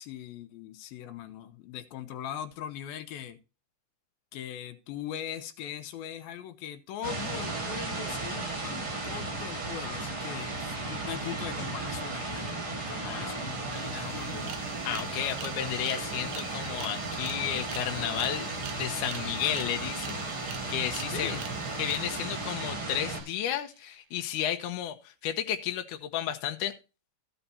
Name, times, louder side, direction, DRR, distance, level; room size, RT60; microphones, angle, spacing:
voice 1, 0.0-3.4 4.3-14.6 21.1-21.5, left 10 dB, 85° left, 2.7 m, -40 dB
sound 1, 7.0-23.2, right 3 dB, 35° right, 3.6 m, -35 dB
sound 2, 12.8-12.9 13.0-23.9, right 10 dB, 70° right, 2.1 m, -46 dB
voice 2, 13.0-13.4 14.8-18.5 18.7-21.3 21.8-26.8, left 11 dB, 70° left, 2.2 m, -33 dB
13.5 x 5.8 x 4.1 m
omnidirectional pair, 4.2 m